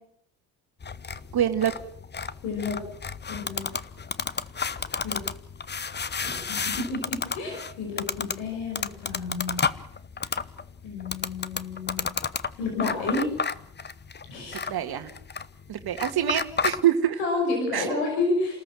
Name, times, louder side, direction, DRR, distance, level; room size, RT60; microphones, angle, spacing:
sound 1, 0.8-16.8, left 5 dB, 25° left, 0.9 m, -32 dB
voice 1, 1.3-1.7 14.7-15.1 15.7-17.2 17.7-18.0, right 10 dB, 55° right, 7 dB, 1.9 m, -25 dB
voice 2, 2.4-2.8 3.3-3.6 5.0-5.2 6.1-9.6 10.2-10.3 10.8-12.1 12.6-13.3 14.3-14.6 17.2-18.6, left 3 dB, 85° left, 1 dB, 5.7 m, -30 dB
29.5 x 13.5 x 7.6 m, 0.68 s
supercardioid pair, 65°, 45 cm